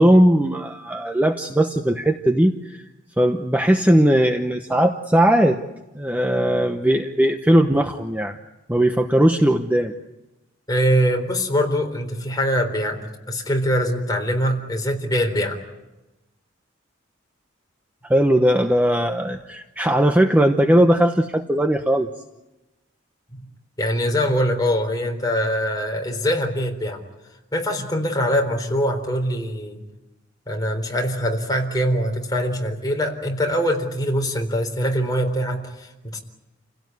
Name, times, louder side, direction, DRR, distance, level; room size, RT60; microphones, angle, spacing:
voice 1, 0.0-2.8 3.2-5.6 5.9-8.3 8.7-9.9 18.0-22.1, right 1 dB, 10° right, 5 dB, 0.9 m, -18 dB
voice 2, 10.7-15.6 23.8-27.0 27.5-29.8 30.5-36.2, equal, 20° left, 2 dB, 4.0 m, -23 dB
29.5 x 17.5 x 9.5 m, 1.0 s
head